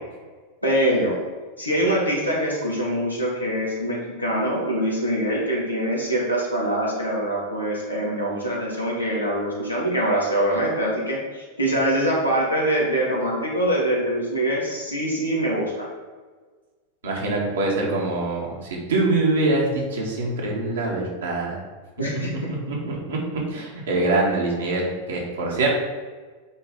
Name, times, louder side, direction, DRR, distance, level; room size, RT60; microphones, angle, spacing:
voice 1, 0.6-1.2 1.6-15.9 22.0-22.5, right 1 dB, 85° left, -5 dB, 2.2 m, -24 dB
voice 2, 17.0-21.6 22.7-25.7, right 2 dB, 65° right, -2 dB, 2.1 m, -24 dB
8.3 x 3.7 x 5.1 m, 1.4 s
figure-of-eight pair, 90°, 0 cm